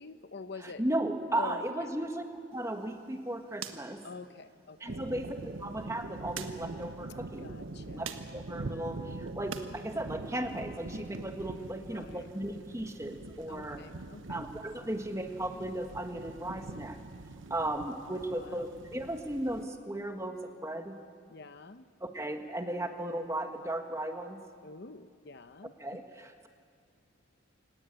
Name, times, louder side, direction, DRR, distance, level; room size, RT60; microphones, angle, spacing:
voice 1, 0.0-0.8 1.4-1.7 4.0-5.0 7.4-8.1 11.8-12.3 13.5-14.5 18.3-18.7 21.3-21.9 24.6-26.0, left 4 dB, 55° left, 11 dB, 0.8 m, -46 dB
voice 2, 0.6-2.2 2.5-4.0 4.8-7.5 7.9-13.8 14.3-17.0 17.5-21.0 22.0-24.4 25.8-26.5, right 1 dB, 15° right, 5 dB, 1.5 m, -36 dB
sound 1, 2.5-9.7 10.1-11.2, right 6 dB, 90° right, 1.6 m, -48 dB
sound 2, 4.9-19.6, right 2 dB, 70° right, 0.9 m, -44 dB
28.5 x 18.5 x 8.8 m, 2.3 s
head